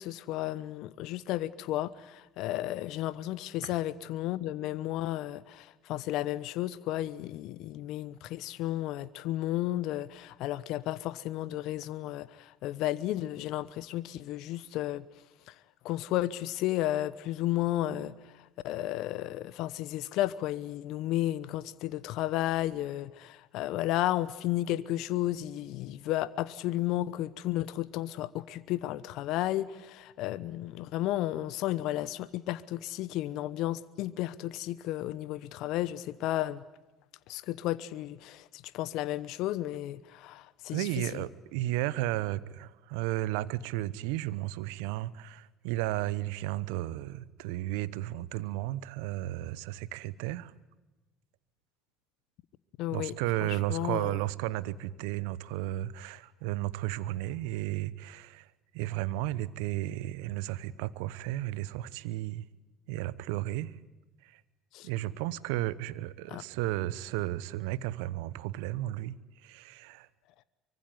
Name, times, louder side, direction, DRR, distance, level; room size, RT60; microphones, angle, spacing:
voice 1, 0.0-15.0 15.5-15.6 15.8-36.6 37.3-41.1 52.8-53.1 53.4-54.2 64.7-64.9 66.3-66.4, left 14 dB, 65° left, 0.9 m, -33 dB
voice 2, 40.7-50.5 52.9-58.5 58.7-62.4 62.9-63.7 64.2-64.4 64.8-69.2 69.4-70.1, right 16 dB, 70° right, 1.0 m, -33 dB
24.5 x 24.0 x 9.5 m
hypercardioid pair, 65°, 0 cm